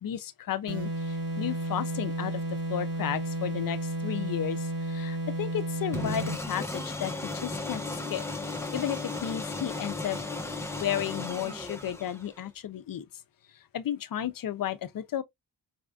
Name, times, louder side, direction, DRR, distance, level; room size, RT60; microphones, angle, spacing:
voice 1, 0.0-2.4 2.7-10.2 10.8-13.0 13.7-15.2, left 10 dB, 55° left, 0.5 m, -33 dB
sound 1, 0.7-6.5, right 1 dB, 70° right, 1.4 m, -32 dB
sound 2, 5.9-12.5, left 2 dB, 5° left, 0.5 m, -35 dB
4.1 x 2.4 x 2.2 m
wide cardioid pair, 150°, 41 cm